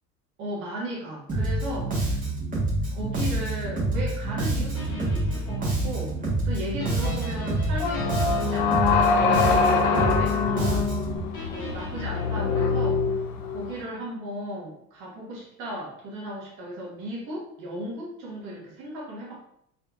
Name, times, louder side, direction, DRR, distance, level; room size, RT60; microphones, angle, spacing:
voice 1, 0.4-2.2 2.9-10.9 11.5-13.2 13.5-19.4, right 1 dB, 40° right, -3 dB, 1.2 m, -36 dB
Bass guitar, 1.3-11.2, right 2 dB, 15° right, 1.2 m, -27 dB
sound 1, 4.8-10.0 11.3-13.3, left 2 dB, 60° left, 1.2 m, -39 dB
sound 2, 7.8-13.8, left 5 dB, 45° left, 0.6 m, -24 dB
3.8 x 3.1 x 2.3 m, 0.73 s
figure-of-eight pair, 75°, 48 cm